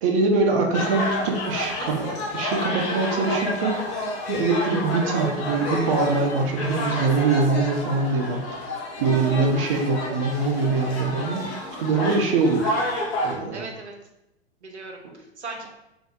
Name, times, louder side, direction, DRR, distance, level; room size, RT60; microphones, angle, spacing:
voice 1, 0.0-3.8 4.3-8.4 8.7-12.7 13.2-13.7 15.0-15.1, right 3 dB, 30° right, 1 dB, 0.4 m, -23 dB
sound 1, 0.7-13.4, left 1 dB, 30° left, 0.5 m, -29 dB
voice 2, 13.5-13.9 14.6-15.7, right 3 dB, 85° right, 2 dB, 0.6 m, -37 dB
2.7 x 2.0 x 3.4 m, 0.89 s
figure-of-eight pair, 105°, 33 cm